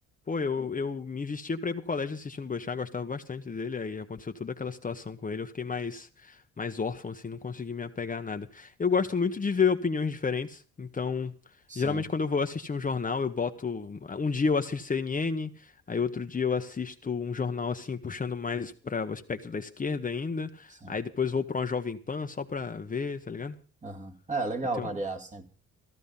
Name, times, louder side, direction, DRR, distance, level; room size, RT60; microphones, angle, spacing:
voice 1, 0.3-11.3 11.7-23.6 24.8-24.9, left 5 dB, 25° left, 1.1 m, -31 dB
voice 2, 11.7-12.0 20.7-21.0 23.8-25.5, right 3 dB, 25° right, 2.1 m, -34 dB
15.0 x 13.5 x 5.5 m
cardioid pair, 90°, 30 cm